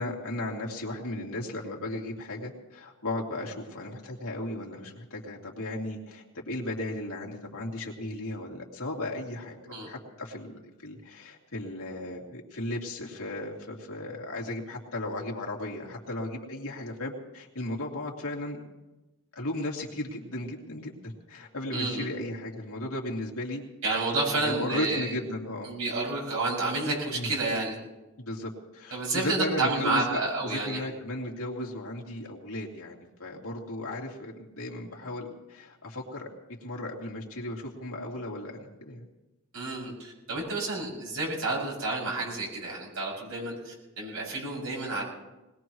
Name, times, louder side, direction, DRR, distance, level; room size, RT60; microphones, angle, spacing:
voice 1, 0.0-10.5 10.8-18.6 19.3-23.6 24.3-25.7 27.1-27.3 28.2-32.9 33.2-36.3 36.6-39.0, left 1 dB, 80° left, -2 dB, 2.8 m, -35 dB
voice 2, 21.7-22.1 23.8-25.0 25.6-27.8 28.9-30.8 39.5-45.0, right 2 dB, 75° right, -4 dB, 6.9 m, -30 dB
21.0 x 20.5 x 3.1 m, 1.0 s
head